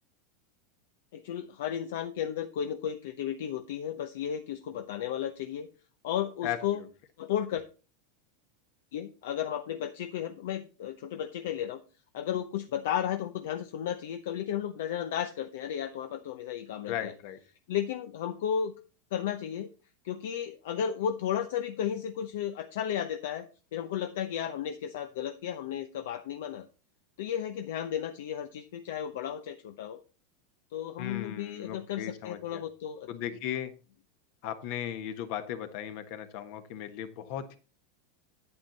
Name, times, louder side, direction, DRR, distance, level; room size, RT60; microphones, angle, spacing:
voice 1, 1.1-5.7 6.0-6.8 7.2-7.6 8.9-11.8 12.1-17.1 17.7-18.7 19.1-19.7 20.0-26.7 27.2-30.0 30.7-33.1, left 9 dB, 75° left, 8 dB, 0.7 m, -34 dB
voice 2, 6.4-6.8 16.9-17.4 31.0-32.6 33.1-33.7 34.4-37.6, left 10 dB, 60° left, 9 dB, 1.4 m, -37 dB
9.0 x 8.6 x 4.0 m, 0.34 s
supercardioid pair, 120°, 0 cm